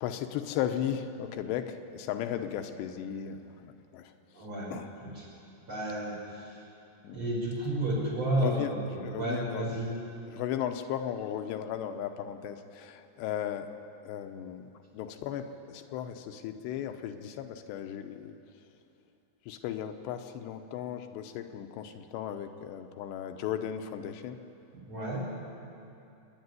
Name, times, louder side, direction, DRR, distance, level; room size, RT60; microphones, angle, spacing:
voice 1, 0.0-4.1 4.7-4.9 7.0-7.2 8.4-8.7 9.0-9.7 10.3-13.7 14.0-18.3 19.5-24.4, left 10 dB, 85° left, 7 dB, 3.0 m, -36 dB
voice 2, 4.3-4.7 5.0-5.3 5.7-6.6 7.1-10.0 24.9-25.2, right 1 dB, 30° right, -5 dB, 6.1 m, -32 dB
27.0 x 10.5 x 9.6 m, 2.7 s
omnidirectional pair, 4.9 m